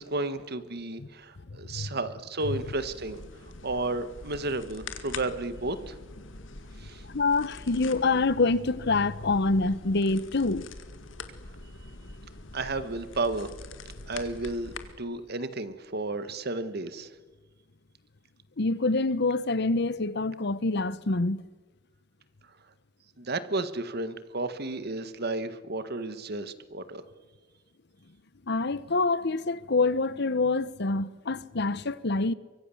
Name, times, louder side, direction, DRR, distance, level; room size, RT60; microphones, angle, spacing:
voice 1, 0.0-3.2 3.6-5.9 6.8-7.0 12.5-13.5 14.1-17.1 23.2-27.0, right 2 dB, 55° right, 1.6 m, -32 dB
voice 2, 1.5-1.9 7.1-10.7 18.6-21.4 28.5-32.3, left 3 dB, 60° left, 0.9 m, -26 dB
sound 1, 2.4-14.9, left 3 dB, 80° left, 2.0 m, -44 dB
25.0 x 24.0 x 7.2 m
head